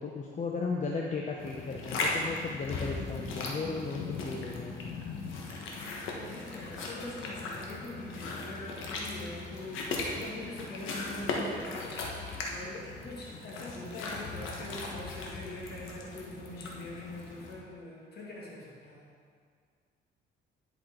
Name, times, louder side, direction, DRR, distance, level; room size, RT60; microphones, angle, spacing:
voice 1, 0.0-5.0, left 4 dB, 35° left, -1 dB, 0.7 m, -36 dB
sound 1, 1.4-17.5, left 3 dB, 85° left, 1.1 m, -38 dB
voice 2, 6.1-12.2 12.5-19.1, left 2 dB, 55° left, -5 dB, 2.1 m, -43 dB
10.5 x 5.0 x 3.8 m, 2.1 s
cardioid pair, 90°, 20 cm